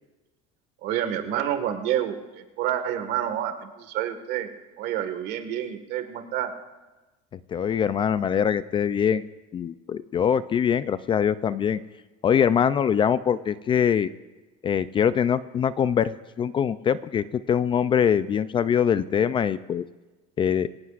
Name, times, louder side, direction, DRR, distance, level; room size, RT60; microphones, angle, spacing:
voice 1, 0.8-4.5 4.8-6.5, right 10 dB, 60° right, 7 dB, 1.8 m, -28 dB
voice 2, 7.5-9.3 9.5-11.8 12.2-14.1 14.6-19.9 20.4-20.7, left 8 dB, 25° left, 15 dB, 0.4 m, -23 dB
23.5 x 17.5 x 2.5 m, 1.2 s
supercardioid pair, 130°, 19 cm